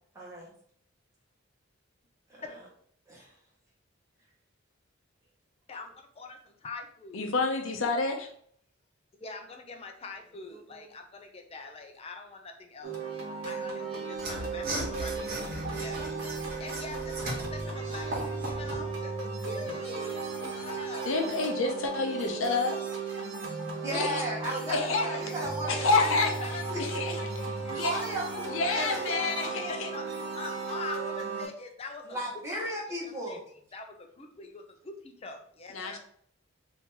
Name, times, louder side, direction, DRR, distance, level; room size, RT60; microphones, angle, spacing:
voice 1, 0.1-0.5 2.3-2.7 3.1-3.3 10.5-10.9 23.8-24.7 25.0-26.2 26.7-27.2 27.8-29.0 32.0-33.4, right 1 dB, 15° right, -5 dB, 1.0 m, -36 dB
voice 2, 5.7-6.4 6.6-7.2 9.2-12.9 13.5-16.0 16.6-20.2 20.5-21.2 23.9-24.7 25.0-25.4 25.8-26.1 26.4-26.6 27.6-27.8 28.7-30.0 30.4-32.2 33.3-33.4 33.7-36.0, left 4 dB, 30° left, 4 dB, 0.5 m, -43 dB
voice 3, 7.1-8.3 21.0-22.8 23.9-24.2 24.7-25.2 25.7-28.0 28.5-29.9 35.7-36.0, left 3 dB, 80° left, 4 dB, 0.6 m, -29 dB
sound 1, 12.8-31.5, right 4 dB, 90° right, 1.2 m, -35 dB
Mechanisms / Sawing, 14.1-18.9, right 1 dB, 50° right, 1.0 m, -37 dB
2.9 x 2.7 x 3.7 m, 0.62 s
head